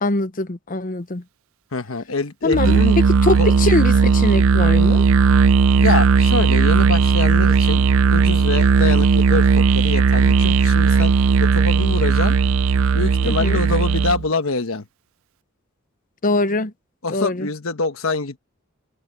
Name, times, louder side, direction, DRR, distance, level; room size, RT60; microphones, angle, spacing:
voice 1, 0.0-1.2 2.4-2.8 3.2-5.0 13.2-13.6 16.2-16.7 17.1-17.5, left 2 dB, 40° left, 0.9 m, -22 dB
voice 2, 1.7-3.0 3.4-3.5 5.8-7.9 8.1-11.1 11.5-12.4 12.9-14.8 17.0-18.4, left 3 dB, 75° left, 1.2 m, -25 dB
Musical instrument, 2.5-14.3, right 5 dB, 70° right, 0.4 m, -16 dB
head